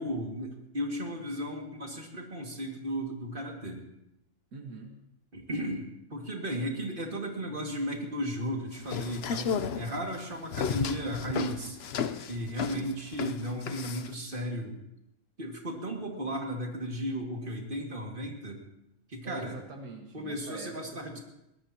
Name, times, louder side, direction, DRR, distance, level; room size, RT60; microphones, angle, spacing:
voice 1, 0.0-3.8 5.3-11.8 12.3-14.8 15.4-18.6 19.1-19.5 20.1-21.2, equal, 35° right, 1 dB, 2.4 m, -35 dB
voice 2, 4.5-5.0 12.5-12.9 19.2-21.2, right 3 dB, 85° right, 2 dB, 2.1 m, -45 dB
sound 1, 8.7-14.1, left 6 dB, 55° left, 0.8 m, -33 dB
22.0 x 18.0 x 3.0 m, 0.85 s
omnidirectional pair, 1.5 m